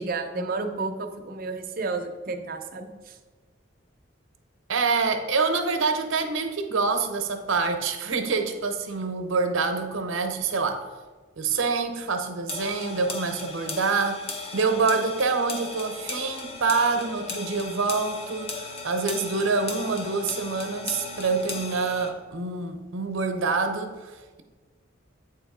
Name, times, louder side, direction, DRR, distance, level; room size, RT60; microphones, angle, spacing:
voice 1, 0.0-3.2, right 3 dB, 45° right, 5 dB, 0.6 m, -31 dB
voice 2, 4.7-10.9 11.4-14.3 14.5-24.4, right 4 dB, 85° right, 7 dB, 0.7 m, -26 dB
sound 1, 12.5-22.1, left 3 dB, 30° left, 0.7 m, -37 dB
8.3 x 3.0 x 4.9 m, 1.3 s
head